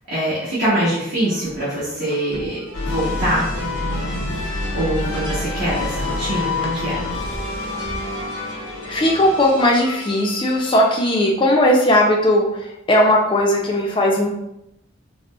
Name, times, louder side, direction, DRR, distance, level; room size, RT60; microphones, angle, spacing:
voice 1, 0.1-3.5 4.7-7.0, right 1 dB, 60° right, -11 dB, 1.1 m, -23 dB
sound 1, 1.2-9.4, equal, 20° right, 0.9 m, -38 dB
sound 2, 2.7-11.1, left 2 dB, 90° left, 0.9 m, -27 dB
voice 2, 8.3-14.3, left 1 dB, 25° left, -1 dB, 0.4 m, -18 dB
3.7 x 2.0 x 2.3 m, 0.83 s
head